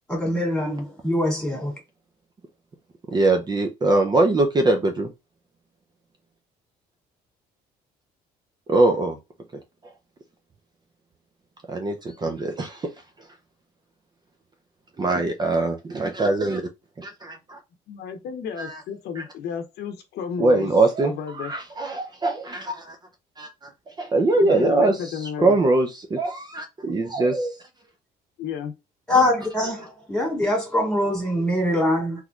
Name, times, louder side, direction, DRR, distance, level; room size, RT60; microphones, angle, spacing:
voice 1, 0.1-1.7 29.1-32.2, left 1 dB, 5° left, 2.2 m, -23 dB
voice 2, 3.1-5.1 8.7-9.2 11.7-12.9 13.2-13.3 15.0-16.7 17.0-17.6 18.6-18.8 19.2-19.3 20.4-23.0 23.4-27.6, right 2 dB, 25° right, 0.5 m, -22 dB
voice 3, 17.9-20.7 21.0-21.5 24.3-25.6 28.4-28.7, left 7 dB, 75° left, 0.8 m, -32 dB
3.7 x 3.1 x 2.3 m
cardioid pair, 110°, 17 cm